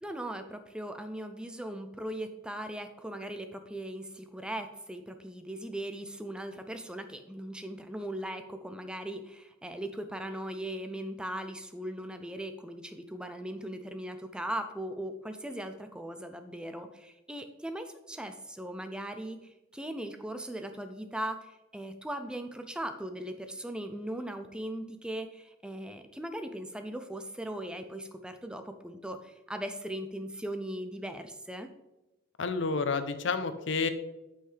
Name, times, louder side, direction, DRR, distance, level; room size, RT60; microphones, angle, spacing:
voice 1, 0.0-31.7, right 1 dB, 5° right, 7 dB, 0.4 m, -39 dB
voice 2, 32.4-33.9, left 4 dB, 80° left, 10 dB, 0.6 m, -30 dB
8.4 x 5.6 x 3.3 m, 1.0 s
head